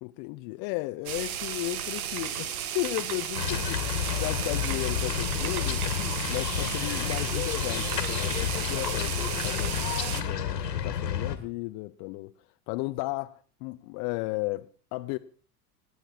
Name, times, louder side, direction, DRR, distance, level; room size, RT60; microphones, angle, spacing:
voice 1, 0.0-3.8 4.2-5.9 6.3-9.9 10.2-12.3 12.7-15.2, left 21 dB, 45° left, 0.8 m, -34 dB
sound 1, 1.1-10.2, right 9 dB, 65° right, 1.8 m, -34 dB
sound 2, 3.4-11.4, left 9 dB, 80° left, 2.0 m, -30 dB
27.0 x 9.4 x 4.5 m
figure-of-eight pair, 80°, 48 cm